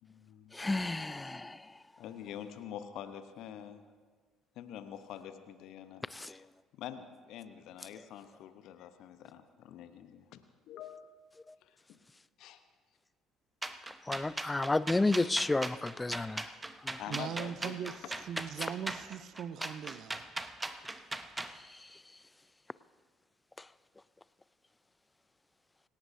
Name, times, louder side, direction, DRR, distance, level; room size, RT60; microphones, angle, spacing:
voice 1, 0.0-0.6 2.0-3.8 4.6-6.5 6.8-11.1 11.6-12.0 12.4-12.6 17.0-17.8 18.1-18.2, left 9 dB, 55° left, 0.9 m, -46 dB
voice 2, 0.5-1.8 6.1-6.4 11.5-11.6 14.1-16.5 16.8-17.0 21.5-22.0 23.6-23.7, left 2 dB, 15° left, 0.5 m, -32 dB
sound 1, 13.6-21.6, right 2 dB, 15° right, 1.0 m, -39 dB
voice 3, 17.1-17.9 18.3-20.2, right 9 dB, 50° right, 0.6 m, -40 dB
26.5 x 17.5 x 2.7 m
figure-of-eight pair, 50°, 0 cm